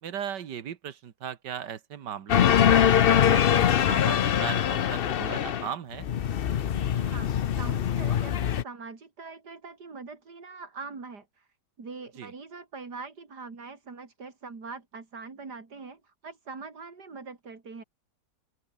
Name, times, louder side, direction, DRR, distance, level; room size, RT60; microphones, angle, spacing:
voice 1, 0.0-6.1 12.2-12.3, right 9 dB, 85° right, 1.9 m, -37 dB
sound 1, 2.3-5.7 5.9-8.6, left 9 dB, 65° left, 0.5 m, -23 dB
voice 2, 6.7-7.3 7.6-11.5 11.8-17.8, right 4 dB, 70° right, 3.8 m, -43 dB
open air
omnidirectional pair, 1.8 m